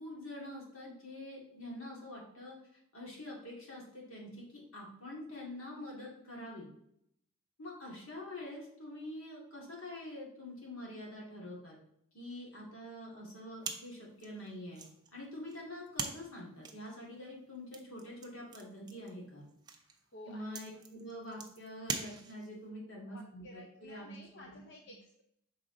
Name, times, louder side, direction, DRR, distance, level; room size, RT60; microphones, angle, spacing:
voice 1, 0.0-2.6 2.9-6.7 7.6-11.8 12.1-14.8 15.1-19.4 20.2-24.6, left 1 dB, 85° left, -4 dB, 2.3 m, -46 dB
sound 1, 13.6-22.7, right 5 dB, 20° right, 0.5 m, -45 dB
voice 2, 19.8-20.6 23.1-25.2, left 1 dB, 55° left, 1 dB, 0.6 m, -53 dB
6.0 x 4.8 x 3.8 m, 0.73 s
head